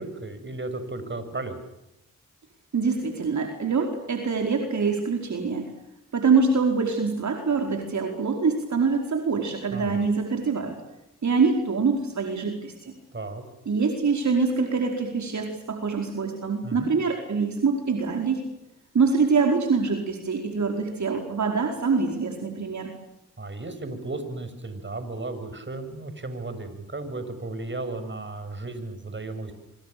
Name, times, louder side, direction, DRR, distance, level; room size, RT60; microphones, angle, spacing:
voice 1, 0.0-1.6 9.7-10.1 13.1-13.4 16.6-16.9 23.4-29.5, right 2 dB, 35° right, 9 dB, 7.0 m, -34 dB
voice 2, 2.7-5.7 6.1-10.7 11.2-12.9 13.7-18.5 18.9-22.9, right 4 dB, 60° right, 3 dB, 4.9 m, -24 dB
26.5 x 25.5 x 6.9 m, 0.89 s
cardioid pair, 55°, 32 cm